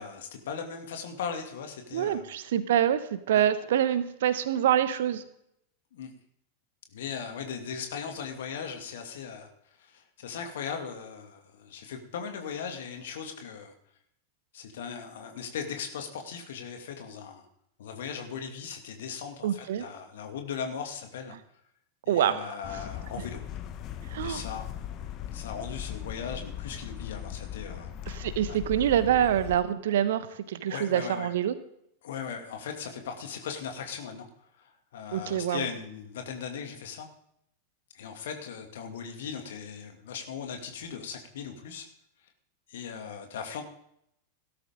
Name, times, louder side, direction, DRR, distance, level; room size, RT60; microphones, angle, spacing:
voice 1, 0.0-2.2 3.3-3.4 5.9-6.1 6.9-9.5 9.8-13.7 14.5-17.5 17.8-21.4 22.1-23.5 24.2-24.7 25.3-28.6 30.7-31.3 32.0-34.3 34.6-37.1 37.9-41.9 42.7-43.6, left 6 dB, 60° left, 4 dB, 2.4 m, -38 dB
voice 2, 1.9-5.2 19.4-19.8 22.1-22.5 24.1-24.4 28.1-31.5 35.1-35.6, right 10 dB, 55° right, 12 dB, 1.2 m, -26 dB
sound 1, 22.6-29.6, left 10 dB, 35° left, 1.2 m, -39 dB
17.5 x 13.0 x 3.7 m, 0.73 s
figure-of-eight pair, 90°, 0 cm